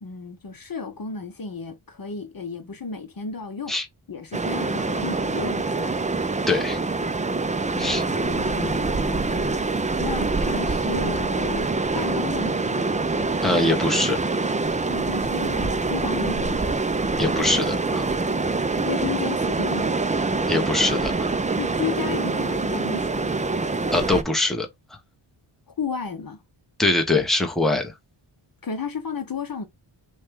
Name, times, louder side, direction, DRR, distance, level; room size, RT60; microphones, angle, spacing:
voice 1, 0.0-3.7 4.1-6.0 7.7-12.9 14.9-16.7 18.8-20.0 21.5-23.4 25.7-26.4 28.6-29.7, left 5 dB, 45° left, 0.8 m, -33 dB
sound 1, 4.3-24.2, right 3 dB, 15° right, 0.4 m, -25 dB
voice 2, 6.5-6.8 7.8-8.0 13.4-14.2 17.2-18.1 20.5-21.3 23.9-24.7 26.8-27.9, left 2 dB, ahead, 0.9 m, -23 dB
6.2 x 2.4 x 3.6 m
wide cardioid pair, 130°, 48 cm